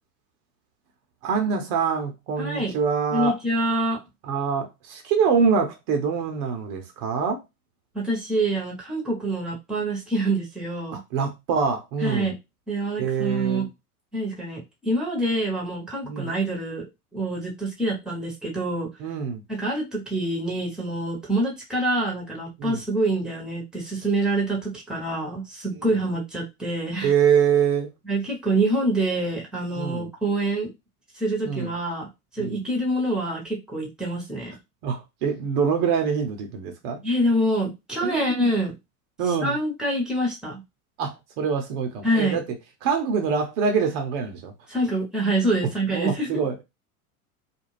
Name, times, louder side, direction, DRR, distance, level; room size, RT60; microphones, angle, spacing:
voice 1, 1.2-3.4 4.2-7.4 10.9-12.3 13.0-13.7 16.0-16.3 19.0-19.4 22.6-22.8 25.9-26.0 27.0-27.9 29.8-30.1 31.4-31.7 32.4-32.6 34.8-37.0 38.0-38.5 39.2-39.6 41.0-42.4 42.8-44.5 45.9-46.6, right 6 dB, 55° right, 0.9 m, -25 dB
voice 2, 2.4-2.7 3.1-4.0 7.9-11.0 12.0-12.4 12.7-13.7 14.1-18.9 19.5-27.1 28.0-30.7 31.1-32.1 32.3-34.5 37.0-38.7 39.3-40.6 42.0-42.4 44.7-46.3, right 1 dB, ahead, 1.0 m, -26 dB
2.5 x 2.3 x 3.1 m
hypercardioid pair, 95°, 44 cm